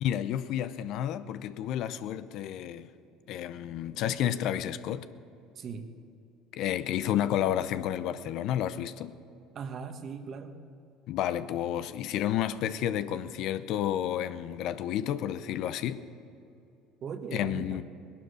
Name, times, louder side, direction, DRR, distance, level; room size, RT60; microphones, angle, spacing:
voice 1, 0.0-2.9 3.3-5.1 6.5-9.2 11.1-16.0 17.3-17.8, left 11 dB, 65° left, 0.6 m, -31 dB
voice 2, 5.5-5.9 9.5-10.6 17.0-17.8, right 6 dB, 50° right, 1.3 m, -39 dB
18.5 x 11.5 x 6.4 m
supercardioid pair, 85°, 0 cm